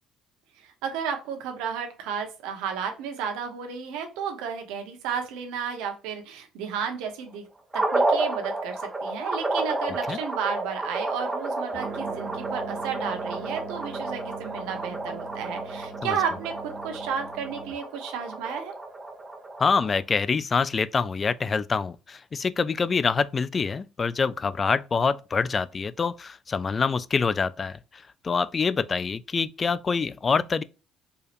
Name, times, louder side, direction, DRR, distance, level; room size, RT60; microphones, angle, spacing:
voice 1, 0.6-7.4 7.9-18.7, right 7 dB, 90° right, 1.1 m, -32 dB
sound 1, 7.7-20.0, right 2 dB, 15° right, 1.0 m, -31 dB
sound 2, 11.7-17.7, right 6 dB, 45° right, 0.8 m, -40 dB
voice 2, 19.6-30.6, left 5 dB, 30° left, 0.3 m, -26 dB
4.6 x 3.3 x 2.5 m
cardioid pair, 95°, 0 cm